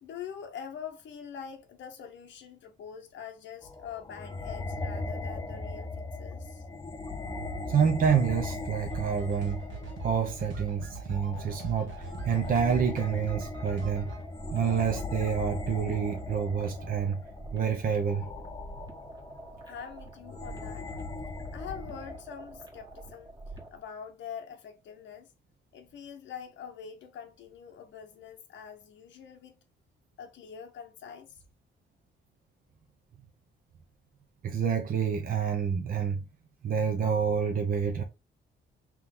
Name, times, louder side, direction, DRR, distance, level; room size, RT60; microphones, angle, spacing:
voice 1, 0.0-6.7 19.6-20.9 21.5-23.3 23.7-25.3 25.7-29.6 30.2-31.4, left 7 dB, 70° left, 0.7 m, -44 dB
sound 1, 3.6-22.2, left 3 dB, 20° left, 0.7 m, -39 dB
voice 2, 7.7-9.7 10.0-14.1 14.5-17.2 17.5-18.3 34.4-36.2 36.6-38.0, right 7 dB, 45° right, 0.8 m, -28 dB
sound 2, 8.9-14.2, right 3 dB, 70° right, 1.2 m, -41 dB
sound 3, 11.8-23.8, right 1 dB, 20° right, 1.5 m, -47 dB
3.6 x 3.0 x 3.6 m
cardioid pair, 90°, 20 cm